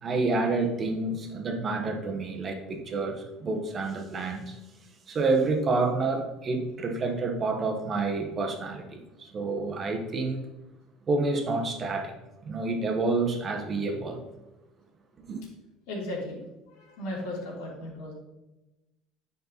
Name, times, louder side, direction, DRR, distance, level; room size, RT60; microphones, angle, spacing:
voice 1, 0.0-4.6 5.1-10.4 11.1-12.1 12.4-14.3 15.2-15.4, right 3 dB, 25° right, 1.2 m, -29 dB
voice 2, 15.9-16.4 16.7-18.1, left 1 dB, 70° left, 3.2 m, -36 dB
9.7 x 5.4 x 4.1 m
cardioid pair, 170°, 0 cm